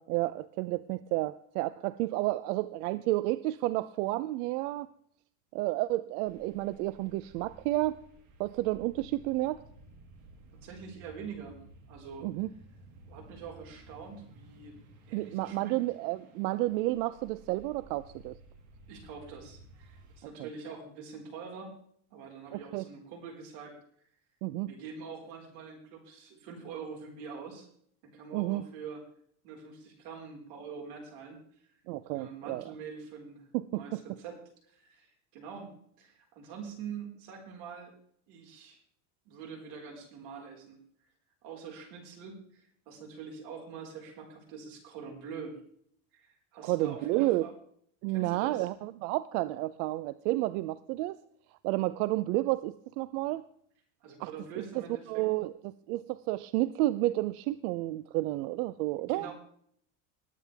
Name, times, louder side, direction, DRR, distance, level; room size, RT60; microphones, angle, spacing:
voice 1, 0.0-4.9 5.5-8.0 8.4-9.6 12.2-12.5 15.1-18.4 22.5-22.9 24.4-24.7 28.3-28.6 31.9-32.7 33.5-34.0 46.6-47.5 48.0-51.2 51.6-53.4 54.2-54.3 54.5-59.3, right 17 dB, 90° right, 15 dB, 0.7 m, -31 dB
sound 1, 6.2-20.2, right 2 dB, 40° right, 2.2 m, -55 dB
voice 2, 10.6-11.6 11.9-12.3 13.1-15.8 18.9-21.7 22.1-23.8 24.7-27.7 28.1-29.0 29.4-31.4 32.1-35.1 35.3-37.9 38.3-38.8 39.2-40.8 41.4-45.6 46.1-47.5 48.1-48.7 54.0-55.3 59.1-59.3, right 6 dB, 60° right, 1 dB, 4.7 m, -45 dB
20.5 x 9.3 x 3.4 m, 0.63 s
cardioid pair, 175°, 44 cm